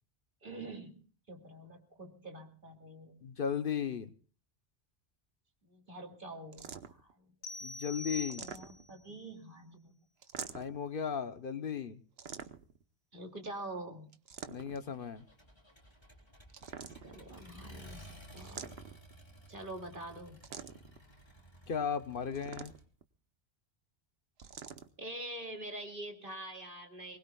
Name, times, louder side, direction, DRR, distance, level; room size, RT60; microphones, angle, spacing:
voice 1, 0.4-1.0 1.3-3.2 5.6-7.6 8.4-10.0 13.1-14.2 16.8-18.7 19.5-20.4 25.0-27.2, right 1 dB, 55° right, 3 dB, 2.7 m, -46 dB
voice 2, 3.2-4.1 7.6-8.5 10.5-12.0 14.5-15.3 21.7-22.7, left 7 dB, 60° left, 11 dB, 1.0 m, -36 dB
sound 1, 6.5-7.1 8.1-9.0 10.2-10.8 12.2-12.8 14.1-14.9 16.5-17.3 18.4-19.1 20.4-21.0 22.3-23.0 24.4-24.9, right 7 dB, 75° right, 1.2 m, -46 dB
sound 2, 7.4-9.0, left 2 dB, 90° left, 1.3 m, -44 dB
Accelerating revving vroom, 14.6-22.8, equal, 25° left, 4.0 m, -55 dB
23.5 x 20.5 x 2.3 m, 0.42 s
omnidirectional pair, 1.1 m